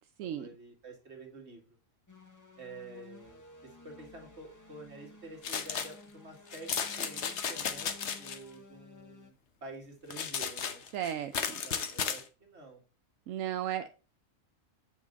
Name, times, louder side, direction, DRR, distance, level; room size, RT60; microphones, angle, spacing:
voice 1, 0.2-1.8 2.6-7.9 8.2-9.3 9.6-10.8 11.1-12.8 13.8-13.9, right 2 dB, 55° right, 2 dB, 2.4 m, -49 dB
sound 1, 2.1-9.3, left 2 dB, 15° left, 1.1 m, -54 dB
sound 2, 5.4-5.9 6.5-8.4 10.1-12.2, left 7 dB, 60° left, 1.2 m, -34 dB
voice 2, 10.9-11.6 13.3-13.9, right 10 dB, 85° right, 10 dB, 1.0 m, -35 dB
7.2 x 6.0 x 4.0 m, 0.33 s
omnidirectional pair, 1.3 m